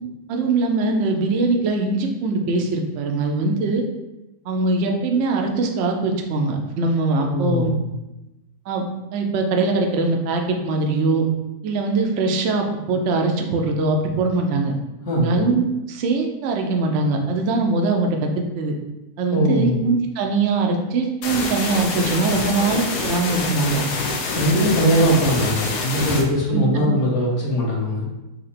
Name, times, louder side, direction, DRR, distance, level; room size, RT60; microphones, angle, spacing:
voice 1, 0.3-3.8 4.5-7.7 8.7-8.8 9.1-11.3 11.6-14.7 15.2-18.7 19.2-23.8 26.5-26.9, right 3 dB, 60° right, 2 dB, 0.8 m, -22 dB
voice 2, 7.3-7.9 15.0-15.4 19.3-19.8 24.3-28.1, equal, 50° left, -4 dB, 1.5 m, -20 dB
sound 1, 21.2-26.2, left 3 dB, 90° left, 1.3 m, -26 dB
4.2 x 2.8 x 4.2 m, 0.98 s
omnidirectional pair, 1.6 m